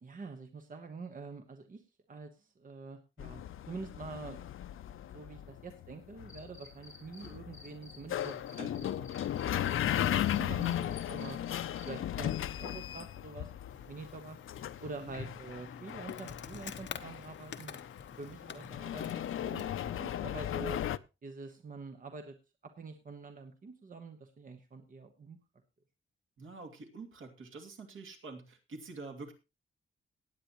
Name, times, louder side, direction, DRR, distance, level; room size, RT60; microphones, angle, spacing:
voice 1, 0.0-1.8 2.1-9.3 9.6-11.4 11.9-13.5 13.9-14.4 14.8-17.8 18.2-20.8 21.2-22.4 22.8-25.4, right 3 dB, 40° right, 6 dB, 1.2 m, -46 dB
sound 1, 3.2-21.0, left 11 dB, 75° left, 0.5 m, -37 dB
Cricket, 6.3-7.3 7.5-11.9, left 3 dB, 15° left, 4.7 m, -53 dB
Insect, 13.7-19.8, left 7 dB, 60° left, 1.0 m, -47 dB
voice 2, 18.3-18.7 26.4-29.3, right 3 dB, 75° right, 2 dB, 2.5 m, -47 dB
18.5 x 8.8 x 3.0 m, 0.28 s
wide cardioid pair, 170°, 21 cm